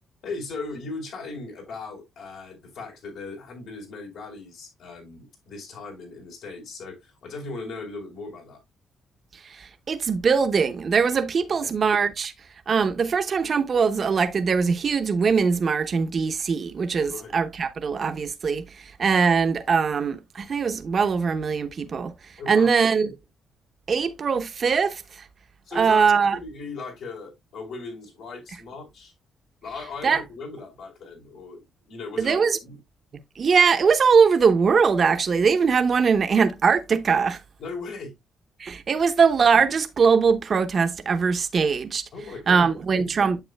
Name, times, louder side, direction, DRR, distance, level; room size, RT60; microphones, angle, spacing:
voice 1, 0.2-8.6 11.6-11.7 17.1-17.3 22.4-22.7 25.7-26.1 26.4-29.1 29.6-32.8 37.6-38.1 42.1-43.1, left 3 dB, 75° left, 4.3 m, -38 dB
voice 2, 9.4-12.3 12.7-22.1 22.5-23.1 23.9-25.0 25.7-26.4 30.0-30.2 32.2-32.6 33.4-37.4 38.6-42.0 42.5-43.4, right 5 dB, 45° right, 0.9 m, -21 dB
9.1 x 7.1 x 2.2 m
cardioid pair, 90°, 0 cm